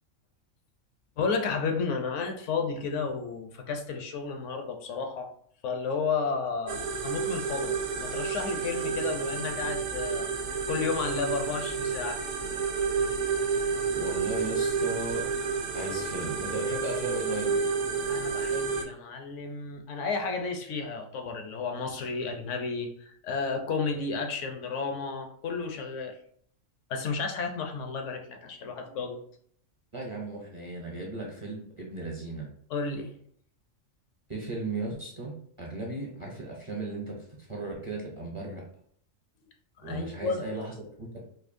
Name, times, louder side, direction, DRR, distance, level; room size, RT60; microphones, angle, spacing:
voice 1, 1.2-5.3 5.6-10.3 10.7-12.2 18.1-26.2 26.9-29.2 32.7-33.1 39.8-40.5, left 4 dB, 70° left, 5 dB, 0.9 m, -32 dB
sound 1, 6.7-18.8, right 5 dB, 70° right, 0.9 m, -30 dB
voice 2, 13.9-15.2 15.7-17.5 29.9-32.5 34.3-38.6 39.8-41.1, right 2 dB, 35° right, -2 dB, 0.6 m, -36 dB
4.3 x 2.7 x 2.6 m, 0.63 s
omnidirectional pair, 1.3 m